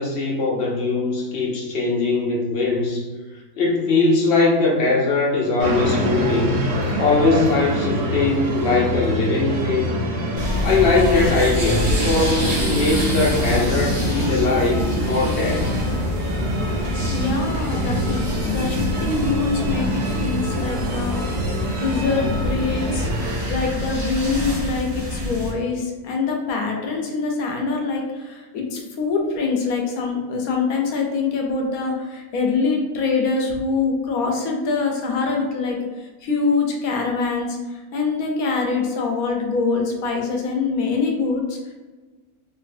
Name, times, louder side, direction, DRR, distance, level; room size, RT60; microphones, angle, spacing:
voice 1, 0.0-3.1 3.6-6.6 7.0-9.9 10.6-15.7, left 3 dB, 60° left, -2 dB, 0.7 m, -20 dB
sound 1, 5.6-23.4, equal, 65° right, 0.4 m, -26 dB
sound 2, 10.4-25.5, equal, 20° right, 0.8 m, -26 dB
voice 2, 17.1-18.2 18.4-21.2 21.8-23.1 23.5-41.7, left 4 dB, 75° left, 1 dB, 1.1 m, -24 dB
3.2 x 2.7 x 2.5 m, 1.2 s
omnidirectional pair, 1.6 m